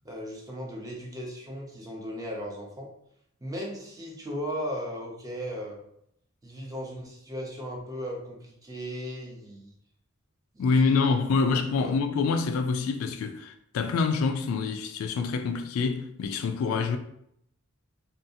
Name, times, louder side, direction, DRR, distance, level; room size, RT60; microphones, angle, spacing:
voice 1, 0.0-2.9 3.4-5.8 6.4-9.7 10.7-10.8 11.4-11.5 11.8-11.9, equal, 15° right, 0.5 m, -36 dB
voice 2, 10.6-17.0, left 4 dB, 75° left, 0.3 m, -26 dB
2.6 x 2.4 x 2.6 m
head